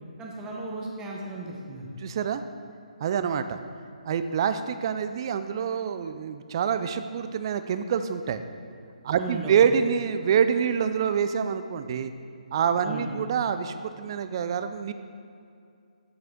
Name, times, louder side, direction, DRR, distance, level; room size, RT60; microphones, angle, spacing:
voice 1, 0.2-1.9 9.2-9.6 12.8-13.1, right 2 dB, 15° right, -2 dB, 0.9 m, -36 dB
voice 2, 2.0-2.4 3.0-3.6 4.1-8.4 9.0-12.1 12.5-14.9, right 7 dB, 35° right, 10 dB, 0.3 m, -26 dB
7.7 x 5.5 x 3.7 m, 2.4 s
figure-of-eight pair, 145°, 4 cm